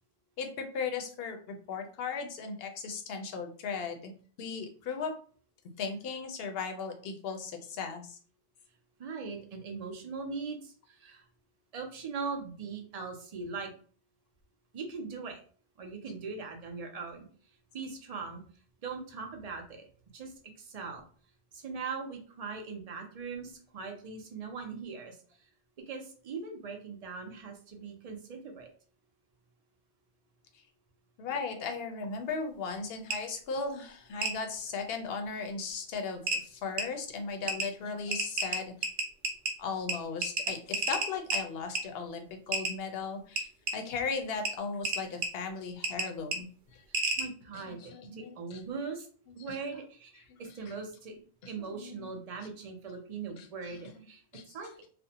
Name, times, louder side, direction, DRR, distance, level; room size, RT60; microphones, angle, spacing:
voice 1, 0.4-4.1 4.4-5.1 5.8-8.2 31.2-38.7 39.6-46.8 47.5-48.6 49.4-49.6 50.3-50.4 51.6-52.2 53.3-54.0 54.3-54.7, left 5 dB, 70° left, 5 dB, 0.7 m, -37 dB
voice 2, 9.0-11.2 11.7-13.7 14.7-15.4 15.8-17.3 17.7-18.4 18.8-19.9 20.1-20.3 20.6-21.0 21.5-25.2 25.9-28.7 47.2-49.1 49.4-51.2 51.5-54.2 54.5-54.7, right 4 dB, 50° right, 3 dB, 0.5 m, -40 dB
sound 1, 33.1-33.2 34.2-34.3 35.7-35.8 36.3-36.4 36.8-36.9 37.5-37.7 38.1-39.5 39.9-40.0 40.2-41.4 41.8-41.9 42.5-42.7 43.4-43.7 44.5-44.6 44.8-45.3 45.8-46.1 46.3-46.4 46.9-47.2, right 3 dB, 80° right, 0.9 m, -30 dB
2.5 x 2.0 x 2.7 m, 0.43 s
omnidirectional pair, 1.1 m